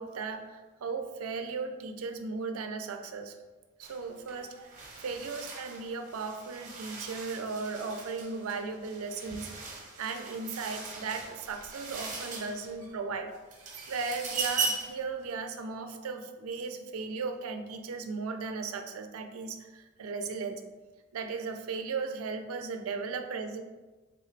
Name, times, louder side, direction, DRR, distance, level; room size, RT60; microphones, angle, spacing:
voice 1, 0.0-3.3 3.8-4.7 5.0-9.5 10.0-13.3 13.9-20.6 21.1-23.6, right 4 dB, 85° right, 7 dB, 0.4 m, -36 dB
sound 1, 3.8-4.0 4.3-12.9 13.3-15.0, right 4 dB, 35° right, 0.8 m, -39 dB
3.6 x 2.4 x 4.4 m, 1.2 s
head